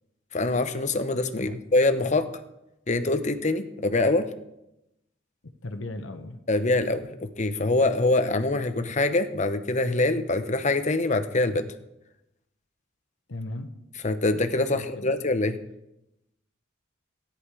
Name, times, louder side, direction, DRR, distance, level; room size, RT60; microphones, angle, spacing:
voice 1, 0.3-2.3 2.9-4.3 6.5-11.7 14.0-15.6, left 2 dB, 35° left, 9 dB, 0.8 m, -24 dB
voice 2, 5.6-6.4 13.3-13.7 14.7-15.1, left 1 dB, 70° left, 7 dB, 1.0 m, -36 dB
13.5 x 10.5 x 4.8 m, 0.88 s
head